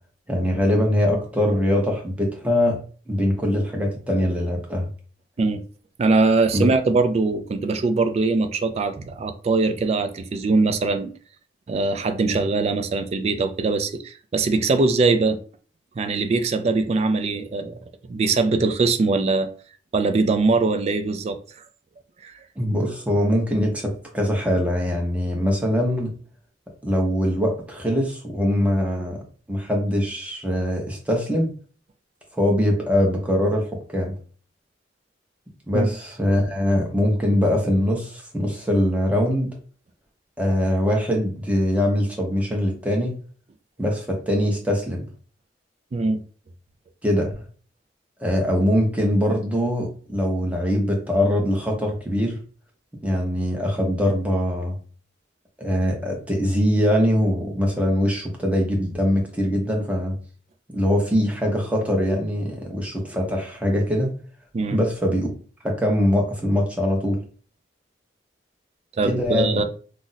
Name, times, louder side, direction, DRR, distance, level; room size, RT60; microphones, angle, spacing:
voice 1, 0.3-2.8 3.1-4.9 6.5-6.7 22.6-26.1 26.8-29.2 29.5-31.5 32.3-34.1 35.7-39.5 40.4-43.1 43.8-45.1 47.0-47.4 48.2-52.4 53.0-54.8 55.6-60.2 60.7-64.1 64.7-65.3 65.6-67.2 69.1-69.6, equal, 10° right, 0.7 m, -22 dB
voice 2, 6.0-11.1 11.7-15.4 16.0-17.8 18.1-19.5 19.9-21.4 22.2-22.3 35.7-35.9 45.9-46.2 64.5-64.8 69.0-69.6, right 3 dB, 35° right, 0.3 m, -22 dB
2.5 x 2.0 x 3.9 m
head